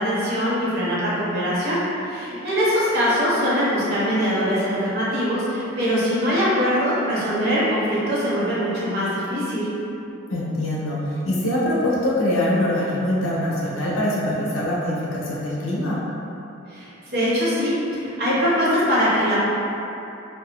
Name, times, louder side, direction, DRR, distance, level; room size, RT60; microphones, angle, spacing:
voice 1, 0.0-9.7 16.7-19.4, equal, 55° right, -8 dB, 0.8 m, -22 dB
voice 2, 10.3-16.0, left 1 dB, 75° left, -5 dB, 0.5 m, -23 dB
2.7 x 2.2 x 3.5 m, 2.9 s
head